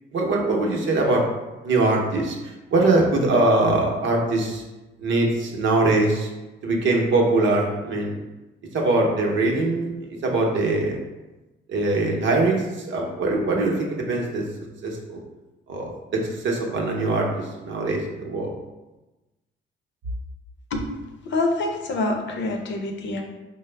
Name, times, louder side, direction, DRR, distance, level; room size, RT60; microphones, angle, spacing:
voice 1, 0.1-1.3 1.6-4.6 5.0-6.3 6.6-8.2 8.7-11.0 11.7-14.5 14.8-15.2 15.7-18.5, right 2 dB, 65° right, 0 dB, 0.8 m, -22 dB
voice 2, 21.2-23.2, left 2 dB, 60° left, 3 dB, 0.7 m, -26 dB
4.5 x 2.0 x 3.3 m, 1.1 s
cardioid pair, 80°, 21 cm